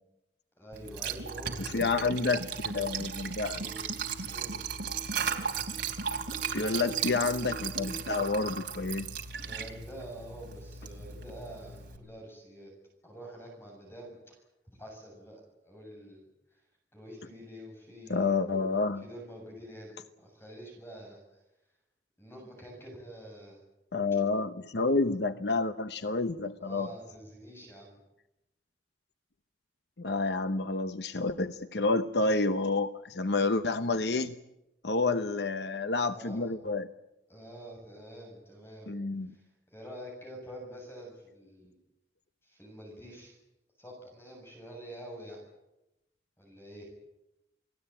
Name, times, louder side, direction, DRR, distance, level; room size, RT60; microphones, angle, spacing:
voice 1, 0.6-1.9 3.4-3.8 4.3-4.6 9.1-12.7 13.0-14.4 14.8-16.2 16.9-18.4 19.0-21.2 22.2-23.6 26.6-28.0 36.1-36.5 37.3-38.9 39.3-41.8 42.4-43.4 43.8-45.4 46.4-46.9, right 1 dB, 15° left, 0 dB, 7.5 m, -47 dB
Liquid, 0.7-12.0, right 6 dB, 75° right, 3.2 m, -36 dB
voice 2, 1.6-3.6 6.5-9.1 18.1-19.0 23.9-26.9 30.0-34.3 34.8-36.9 38.9-39.3, left 3 dB, 70° left, 10 dB, 0.9 m, -29 dB
28.5 x 19.0 x 8.9 m, 0.92 s
head